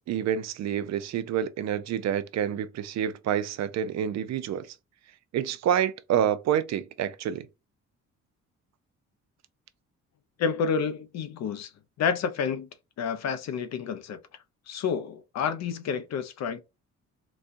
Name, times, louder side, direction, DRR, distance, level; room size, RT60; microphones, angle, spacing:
voice 1, 0.1-4.7 5.3-7.5, right 9 dB, 60° right, 0.5 m, -28 dB
voice 2, 10.4-11.7 12.0-12.7 13.0-14.2 14.7-16.6, left 6 dB, 60° left, 0.6 m, -29 dB
4.1 x 2.3 x 2.5 m
cardioid pair, 90°, 30 cm